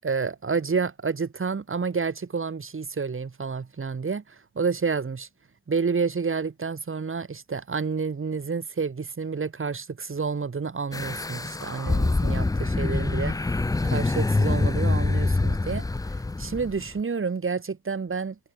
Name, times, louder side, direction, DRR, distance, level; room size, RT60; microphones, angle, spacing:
voice 1, 0.0-5.3 5.7-13.4 13.8-15.9 16.4-18.4, right 5 dB, 40° right, 5.7 m, -29 dB
sound 1, 10.9-16.9, left 2 dB, 10° left, 0.6 m, -25 dB
cardioid pair, 65°, 33 cm